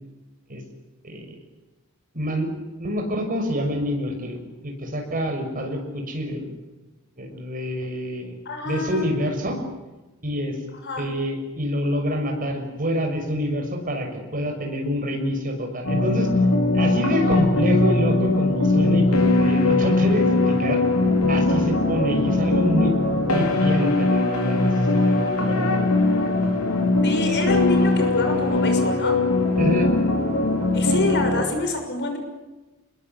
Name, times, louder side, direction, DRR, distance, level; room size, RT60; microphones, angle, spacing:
voice 1, 1.0-1.4 2.1-2.5 2.8-6.5 7.2-8.4 8.6-9.6 10.2-10.6 11.0-16.3 16.7-20.8 21.3-23.0 23.3-25.2 25.5-25.7 29.6-29.9, equal, 40° right, 3 dB, 6.5 m, -26 dB
voice 2, 8.4-9.1 10.8-11.0 27.0-29.1 30.7-32.2, left 2 dB, 50° left, 5 dB, 6.3 m, -27 dB
sound 1, 15.8-31.4, left 2 dB, 75° left, 4.9 m, -20 dB
28.5 x 21.5 x 8.3 m, 1.1 s
head